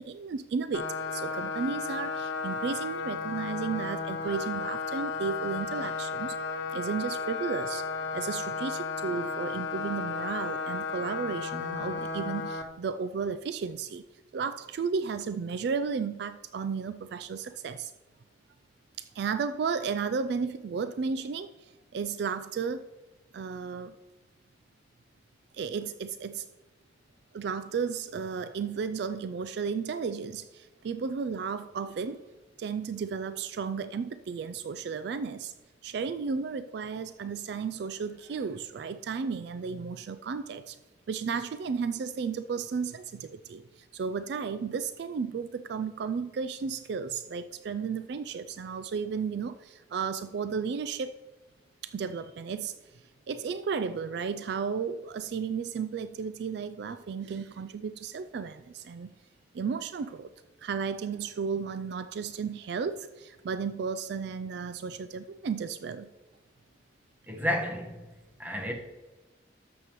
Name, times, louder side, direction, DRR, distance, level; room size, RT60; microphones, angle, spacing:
voice 1, 0.0-6.4 6.7-7.9 8.1-14.0 14.3-17.9 19.0-22.9 23.3-23.9 25.5-26.5 27.3-32.2 32.6-35.5 35.8-40.8 41.1-51.2 51.8-52.8 53.3-59.1 59.5-60.3 60.6-66.1, right 5 dB, 60° right, 0.3 m, -33 dB
sound 1, 0.7-12.6, left 4 dB, 80° left, 0.9 m, -34 dB
voice 2, 67.3-68.0 68.4-68.7, left 1 dB, 10° right, 1.2 m, -31 dB
12.5 x 7.1 x 3.0 m
head